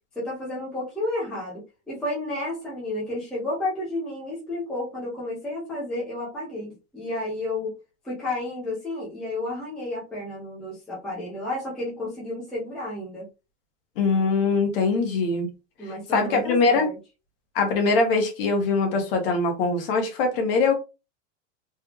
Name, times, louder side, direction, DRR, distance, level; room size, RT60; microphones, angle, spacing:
voice 1, 0.2-7.8 8.0-13.3 15.8-17.0, left 1 dB, ahead, 0.4 m, -31 dB
voice 2, 14.0-15.5 16.1-16.9 17.5-20.7, left 3 dB, 50° left, 1.2 m, -22 dB
3.4 x 3.1 x 2.4 m
supercardioid pair, 170°, 36 cm